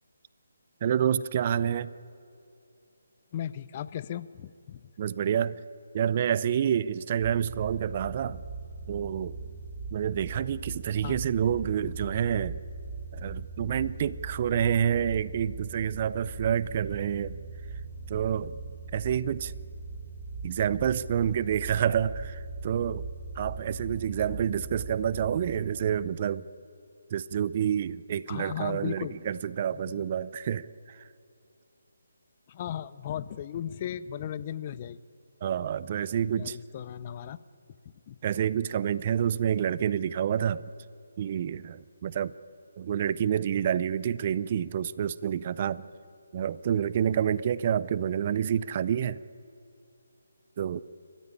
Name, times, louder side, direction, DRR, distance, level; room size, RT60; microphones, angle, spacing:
voice 1, 0.8-1.9 5.0-5.6 5.9-8.4 8.9-9.4 9.9-12.6 13.1-17.4 18.1-18.5 18.9-19.5 20.4-23.1 23.3-26.5 27.1-31.0 35.4-36.6 38.2-40.6 41.2-42.3 42.8-45.9 46.3-49.2 50.6-50.8, right 9 dB, 35° right, 18 dB, 0.6 m, -28 dB
voice 2, 3.3-4.9 11.0-11.2 28.3-29.2 32.5-35.0 36.4-37.4 38.1-38.2, left 10 dB, 30° left, 16 dB, 0.6 m, -36 dB
sound 1, 7.2-25.5, right 3 dB, 15° right, 6.8 m, -40 dB
30.0 x 14.5 x 9.7 m, 2.6 s
figure-of-eight pair, 150°, 0 cm